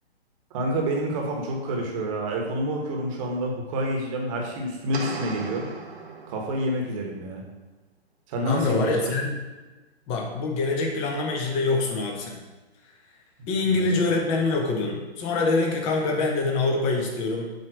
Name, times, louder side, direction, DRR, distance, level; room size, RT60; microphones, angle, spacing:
voice 1, 0.5-5.7 6.3-7.4 8.3-8.9 13.8-14.0, right 1 dB, 30° right, 0 dB, 1.4 m, -28 dB
sound 1, 4.9-6.9, right 4 dB, 75° right, 1.4 m, -36 dB
voice 2, 8.4-9.4 10.1-12.4 13.5-17.6, left 3 dB, 20° left, 1 dB, 0.8 m, -25 dB
7.9 x 3.0 x 6.2 m, 1.2 s
hypercardioid pair, 145°, 32 cm